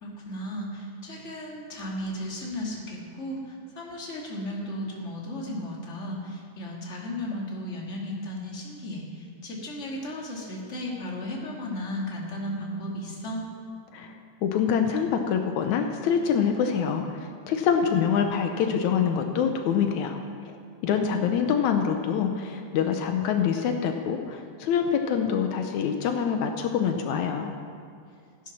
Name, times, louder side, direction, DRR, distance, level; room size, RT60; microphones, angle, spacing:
voice 1, 0.0-13.4 21.0-21.3, left 1 dB, 25° left, -2 dB, 2.3 m, -35 dB
voice 2, 13.9-20.6 20.8-27.5, left 7 dB, 80° left, 5 dB, 2.2 m, -25 dB
16.0 x 10.5 x 6.0 m, 2.3 s
omnidirectional pair, 3.4 m